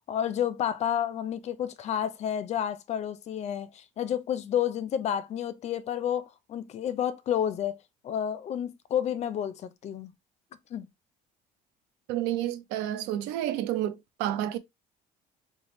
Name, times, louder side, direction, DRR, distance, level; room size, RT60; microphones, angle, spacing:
voice 1, 0.1-7.8 8.0-10.1 10.7-10.9, left 9 dB, 40° left, 0.4 m, -30 dB
voice 2, 12.1-14.6, right 12 dB, 90° right, 0.4 m, -30 dB
3.0 x 2.1 x 3.0 m
cardioid pair, 130°, 17 cm